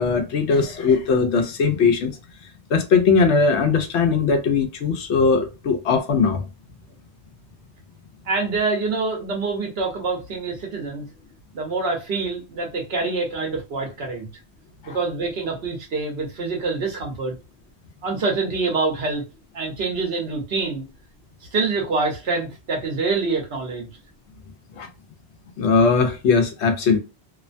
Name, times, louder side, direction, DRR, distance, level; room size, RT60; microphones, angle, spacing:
voice 1, 0.0-2.2 2.7-6.4 14.8-15.0 24.8-24.9 25.6-27.0, left 5 dB, 85° left, 1.0 m, -19 dB
voice 2, 8.2-11.0 11.5-14.3 14.8-17.3 18.0-19.2 19.5-20.8 21.4-23.9, right 3 dB, 70° right, 1.1 m, -26 dB
2.9 x 2.1 x 2.5 m
omnidirectional pair, 1.1 m